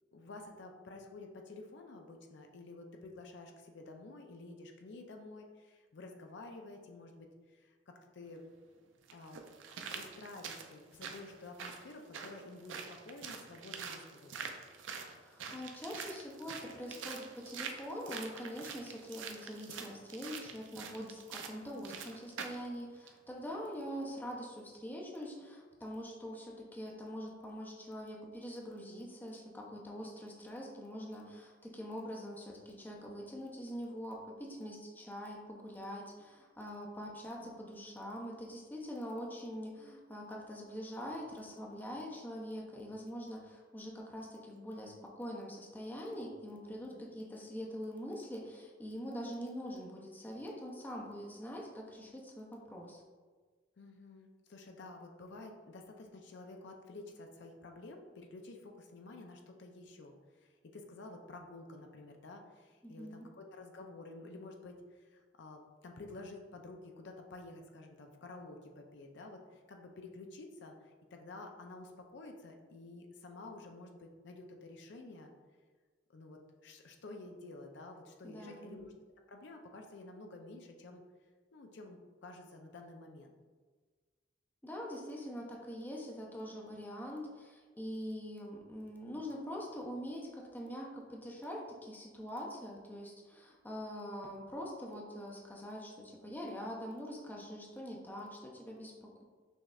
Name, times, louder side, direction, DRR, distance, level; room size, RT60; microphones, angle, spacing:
voice 1, 0.1-8.4 9.1-9.4 9.9-14.6 37.0-37.1 37.4-37.6 46.9-47.0 53.8-75.3 76.1-78.9 79.3-81.0 81.5-83.3, left 2 dB, 65° left, 3 dB, 0.5 m, -51 dB
sound 1, 8.2-8.3 9.1-22.7 23.1-23.2, right 6 dB, 80° right, 0.5 m, -46 dB
voice 2, 15.1-53.0 62.8-63.3 78.2-78.8 84.6-99.2, equal, 10° left, -1 dB, 0.5 m, -44 dB
6.1 x 3.2 x 2.4 m, 1.4 s
head